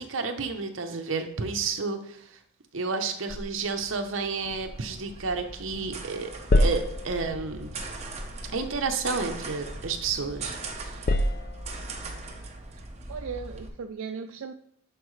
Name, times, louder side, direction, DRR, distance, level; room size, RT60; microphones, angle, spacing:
voice 1, 0.0-2.2 2.7-7.7 8.5-10.6 10.8-11.0, right 4 dB, 60° right, 6 dB, 0.8 m, -31 dB
sound 1, 3.3-5.9 6.1-10.4 10.7-12.0, left 1 dB, 40° left, 0.4 m, -30 dB
sound 2, 4.4-13.7, right 3 dB, 30° right, 0.9 m, -40 dB
voice 2, 13.1-14.5, right 5 dB, 75° right, 7 dB, 0.4 m, -37 dB
10.0 x 4.8 x 3.2 m, 0.69 s
head